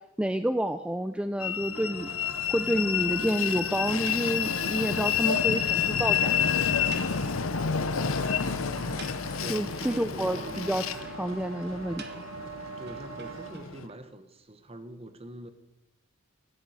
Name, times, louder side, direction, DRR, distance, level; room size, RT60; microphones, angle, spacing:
voice 1, 0.2-6.4 9.5-12.1, right 1 dB, 5° right, 9 dB, 0.4 m, -29 dB
Train, 1.4-13.9, left 7 dB, 75° left, 0.8 m, -29 dB
sound 1, 1.7-13.5, right 5 dB, 65° right, 2.2 m, -44 dB
sound 2, 4.1-4.8 5.1-5.2 5.4-5.5 5.8-5.9 6.1-6.2 6.9-7.9 8.2-8.3 8.7-9.7 12.0-13.9, right 6 dB, 50° right, 1.5 m, -48 dB
voice 2, 9.4-10.8 12.8-15.5, right 2 dB, 30° right, 10 dB, 1.1 m, -43 dB
15.0 x 7.3 x 9.7 m, 0.98 s
head